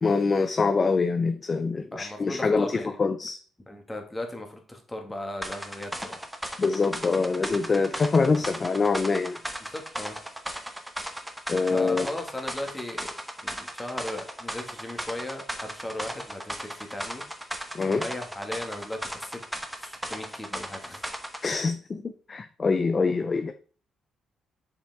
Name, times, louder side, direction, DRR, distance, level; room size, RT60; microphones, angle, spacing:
voice 1, 0.0-3.4 6.6-9.4 11.5-12.1 17.7-18.0 21.4-23.5, left 4 dB, 35° left, 9 dB, 0.5 m, -25 dB
voice 2, 1.9-3.0 3.7-6.2 8.3-8.5 9.6-10.2 11.7-13.1 13.4-17.2 17.9-19.4 19.8-21.1, left 1 dB, 15° left, 3 dB, 1.8 m, -37 dB
sound 1, 5.4-21.5, right 1 dB, 5° right, 1.0 m, -37 dB
6.8 x 5.1 x 3.5 m, 0.41 s
cardioid pair, 90°, 0 cm